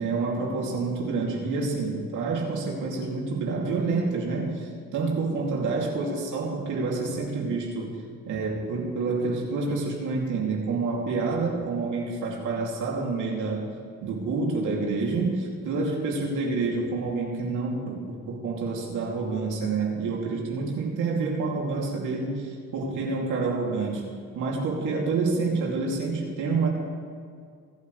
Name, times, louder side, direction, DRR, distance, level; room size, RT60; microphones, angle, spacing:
voice 1, 0.0-8.0 8.3-13.6 14.0-24.0 24.3-26.7, right 3 dB, 85° right, -2 dB, 2.6 m, -28 dB
22.0 x 8.5 x 3.2 m, 2.2 s
cardioid pair, 90°, 30 cm